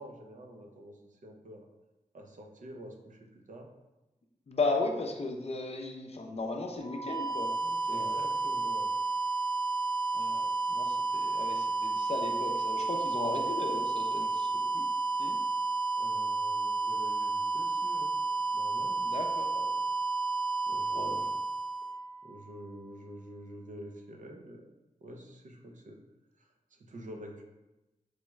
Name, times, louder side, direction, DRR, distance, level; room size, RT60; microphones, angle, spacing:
voice 1, 0.0-1.7 2.1-3.7 7.9-8.9 15.9-18.1 18.5-19.0 20.7-21.3 22.2-24.7 25.0-26.0 26.4-27.4, right 1 dB, 65° right, 2 dB, 0.6 m, -47 dB
voice 2, 4.5-8.3 10.1-14.9 15.2-15.4 19.0-19.8 20.9-21.2, left 3 dB, 45° left, 3 dB, 0.5 m, -36 dB
sound 1, 6.8-22.6, right 3 dB, 30° right, 0.7 m, -31 dB
4.6 x 2.2 x 3.1 m, 1.0 s
wide cardioid pair, 80°, 14 cm